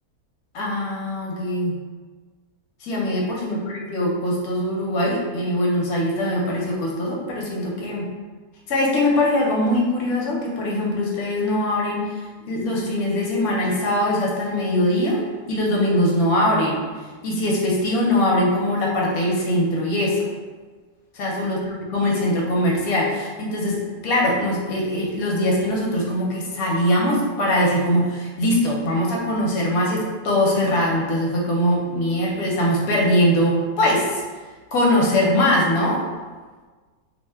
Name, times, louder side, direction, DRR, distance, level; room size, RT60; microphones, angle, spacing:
voice 1, 0.5-1.8 2.8-8.1 8.7-15.2 15.5-16.8 17.2-20.2 21.1-34.2 34.7-36.0, left 1 dB, 70° left, -3 dB, 1.0 m, -22 dB
2.9 x 2.1 x 3.3 m, 1.4 s
omnidirectional pair, 1.7 m